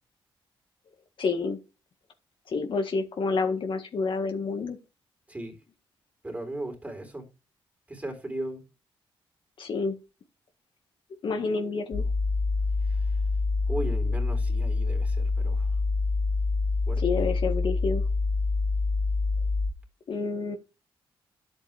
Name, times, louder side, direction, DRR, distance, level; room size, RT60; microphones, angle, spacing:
voice 1, 1.2-1.6 2.5-4.8 9.6-10.0 11.2-12.0 17.0-18.0 20.1-20.6, left 4 dB, 60° left, 1.8 m, -28 dB
voice 2, 6.2-7.3 7.9-8.6 12.8-13.1 13.7-15.7 16.9-17.3, right 1 dB, 15° right, 3.7 m, -37 dB
sound 1, 11.9-19.7, left 3 dB, 5° left, 2.5 m, -26 dB
10.5 x 8.0 x 3.4 m
cardioid pair, 90°, 9 cm